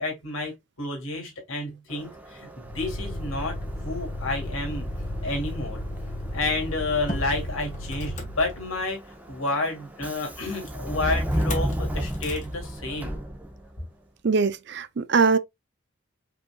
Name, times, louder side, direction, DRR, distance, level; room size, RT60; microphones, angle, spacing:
voice 1, 0.0-3.6 3.8-4.9 5.2-5.8 6.3-9.0 9.3-13.1, left 2 dB, 80° left, 2.7 m, -30 dB
Subway metro underground, 1.9-13.8, equal, 10° right, 0.8 m, -34 dB
Motor vehicle (road), 2.6-9.0 11.3-11.7 12.1-12.4, left 1 dB, 35° left, 1.3 m, -34 dB
voice 2, 14.2-15.4, right 5 dB, 55° right, 0.5 m, -22 dB
5.3 x 4.2 x 2.3 m
head